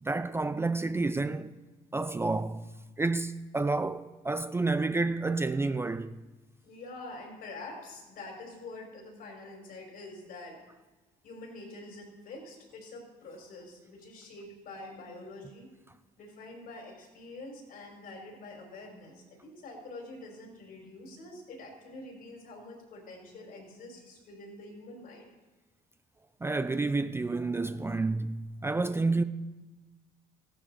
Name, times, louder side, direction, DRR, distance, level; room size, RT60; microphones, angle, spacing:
voice 1, 0.0-1.6 1.9-2.6 3.0-6.2 26.4-29.2, right 3 dB, 15° right, 0.4 m, -29 dB
voice 2, 6.6-10.6 11.2-15.7 16.2-25.3, left 2 dB, 65° left, 5.1 m, -46 dB
15.5 x 11.5 x 4.9 m
cardioid pair, 110°, 17 cm